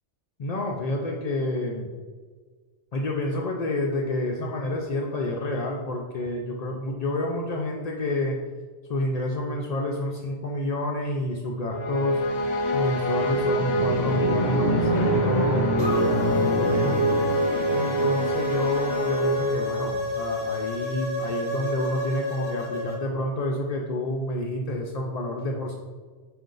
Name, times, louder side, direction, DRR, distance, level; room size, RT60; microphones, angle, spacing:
voice 1, 0.4-1.9 2.9-8.4 8.9-12.2 12.7-17.2 17.7-25.7, left 1 dB, 75° left, -1 dB, 0.3 m, -29 dB
sound 1, 11.7-20.1, right 1 dB, 45° left, 0.7 m, -25 dB
sound 2, 15.8-23.0, left 2 dB, 55° right, 1.2 m, -31 dB
5.1 x 2.5 x 3.8 m, 1.5 s
omnidirectional pair, 1.3 m